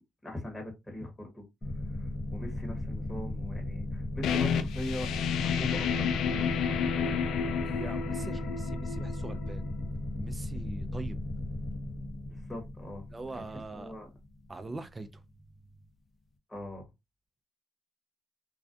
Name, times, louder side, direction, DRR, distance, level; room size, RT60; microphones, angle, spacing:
voice 1, 0.2-1.4 1.9-6.5 12.3-13.0 13.3-14.1 16.5-16.9, left 1 dB, 15° left, 1.0 m, -41 dB
sound 1, 1.6-14.8, left 1 dB, 30° left, 0.5 m, -36 dB
sound 2, 4.2-9.7, left 7 dB, 80° left, 0.3 m, -31 dB
voice 2, 7.6-9.6 10.2-11.2 13.1-13.9 14.5-15.2, right 2 dB, 25° right, 0.4 m, -42 dB
2.3 x 2.2 x 2.5 m
cardioid pair, 90°, 0 cm